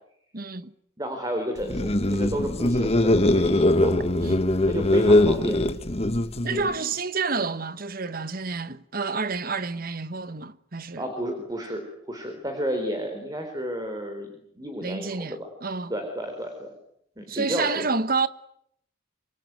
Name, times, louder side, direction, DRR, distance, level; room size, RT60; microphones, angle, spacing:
voice 1, 0.3-0.7 4.2-4.5 6.4-11.0 14.8-15.9 17.3-18.3, right 4 dB, 45° right, 1.2 m, -29 dB
voice 2, 1.0-3.9 4.7-5.6 6.4-6.9 11.0-11.8 12.1-15.5 15.9-16.7 17.2-17.9, equal, 20° right, 4.0 m, -32 dB
sound 1, 1.6-6.7, left 1 dB, 30° left, 1.4 m, -21 dB
26.5 x 23.0 x 9.5 m
head